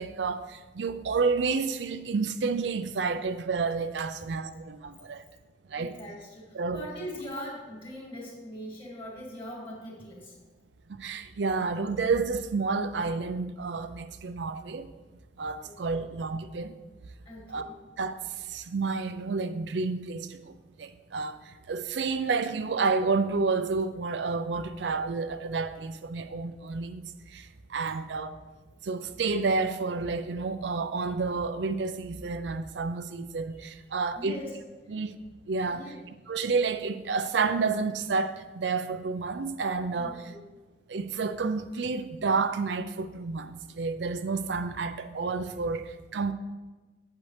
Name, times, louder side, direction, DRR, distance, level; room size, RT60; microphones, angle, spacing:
voice 1, 0.0-5.2 5.7-6.0 6.5-6.9 7.4-7.5 11.0-14.9 15.4-16.8 17.5-17.7 18.0-18.2 18.5-28.4 28.8-34.4 34.9-35.1 35.5-36.0 36.3-40.3 40.9-46.3, right 4 dB, 80° right, 0.5 m, -30 dB
voice 2, 5.8-10.3 15.6-16.0 17.3-17.7 33.5-33.6 34.2-34.5 35.7-36.0 39.9-40.5, equal, 30° left, 2.5 m, -41 dB
8.2 x 8.1 x 3.3 m
head